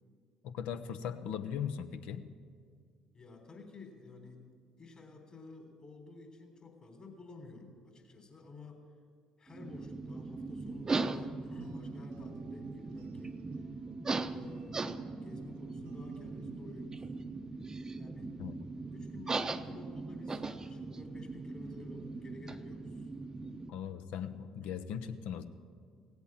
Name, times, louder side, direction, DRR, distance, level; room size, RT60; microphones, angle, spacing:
voice 1, 0.4-2.2 18.4-18.6 23.7-25.4, left 8 dB, 70° left, 10 dB, 0.7 m, -39 dB
voice 2, 3.1-4.4 4.8-8.8 9.4-13.4 14.2-17.0 17.9-18.3 18.9-23.1 24.6-24.7 25.0-25.1, left 3 dB, 40° left, 2 dB, 3.4 m, -52 dB
sound 1, 9.5-23.7, right 3 dB, 25° right, 0.7 m, -39 dB
sound 2, 11.0-16.6, right 2 dB, 80° right, 1.3 m, -60 dB
16.5 x 8.2 x 7.4 m, 2.1 s
hypercardioid pair, 55°, 2 cm